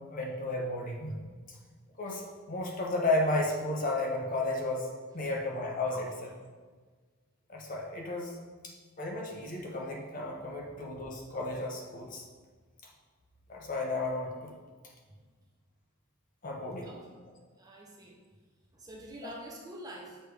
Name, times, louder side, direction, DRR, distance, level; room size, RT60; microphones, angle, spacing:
voice 1, 0.1-1.2 1.5-1.6 2.0-4.9 5.1-6.3 7.5-8.4 8.6-12.3 13.5-14.5 16.4-16.9, left 2 dB, 35° left, -1 dB, 0.8 m, -33 dB
voice 2, 17.6-18.2 18.7-20.2, right 1 dB, 15° right, -2 dB, 0.7 m, -46 dB
6.6 x 3.3 x 4.8 m, 1.4 s
head